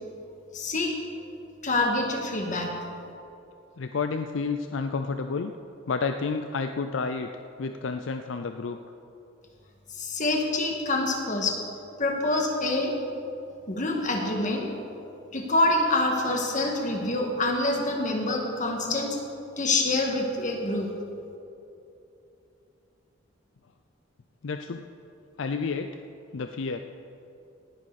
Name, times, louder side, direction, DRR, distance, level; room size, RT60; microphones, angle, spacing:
voice 1, 0.5-0.9 1.6-2.7 10.0-11.6 12.0-12.9 13.7-14.7 15.3-19.2 19.6-20.9, left 2 dB, 40° left, 1 dB, 1.9 m, -26 dB
voice 2, 3.8-5.5 5.9-7.3 7.6-8.8 24.4-24.9 25.4-25.9 26.3-26.9, left 4 dB, 70° left, 7 dB, 0.5 m, -30 dB
18.5 x 11.0 x 4.2 m, 2.8 s
head